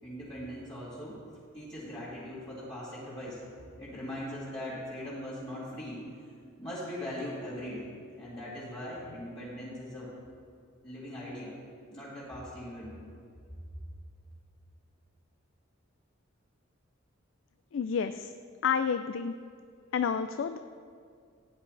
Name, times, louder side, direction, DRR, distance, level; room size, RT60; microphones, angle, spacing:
voice 1, 0.0-1.2 1.5-3.4 3.8-6.0 6.6-7.9 8.2-10.1 10.8-11.5 11.9-13.0, left 1 dB, 25° left, -11 dB, 2.4 m, -40 dB
voice 2, 17.7-18.3 18.6-19.3 19.9-20.6, left 6 dB, 65° left, 10 dB, 0.3 m, -29 dB
16.0 x 10.0 x 3.3 m, 2.2 s
head